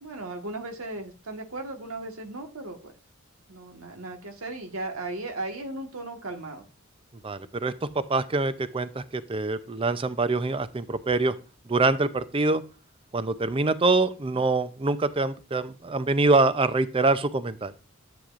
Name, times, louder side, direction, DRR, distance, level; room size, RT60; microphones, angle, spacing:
voice 1, 0.0-2.9 3.5-6.7, right 2 dB, 85° right, 4 dB, 1.5 m, -36 dB
voice 2, 7.2-11.3 11.7-12.6 13.1-17.7, right 3 dB, 25° right, 14 dB, 0.5 m, -25 dB
10.0 x 7.8 x 2.5 m, 0.33 s
head